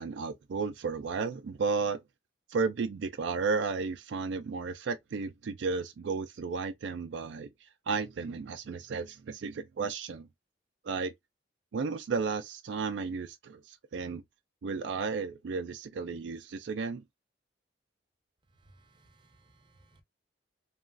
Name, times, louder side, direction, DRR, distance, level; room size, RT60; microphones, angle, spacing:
voice 1, 0.0-2.0 2.5-10.3 10.8-11.1 11.7-14.2 14.6-17.0, right 4 dB, 75° right, 0.4 m, -33 dB
voice 2, 18.7-20.0, right 2 dB, 25° right, 0.6 m, -62 dB
3.0 x 2.3 x 2.4 m
head